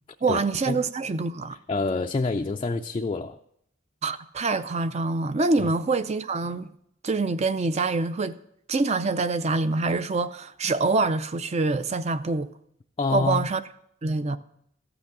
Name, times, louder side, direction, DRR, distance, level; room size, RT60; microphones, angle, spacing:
voice 1, 0.2-1.6 4.0-6.7 7.0-8.4 8.7-12.5 13.1-13.6 14.0-14.4, right 3 dB, 35° right, 0.5 m, -25 dB
voice 2, 1.7-3.4 13.0-13.5, left 3 dB, 25° left, 0.3 m, -27 dB
14.0 x 6.0 x 6.7 m
head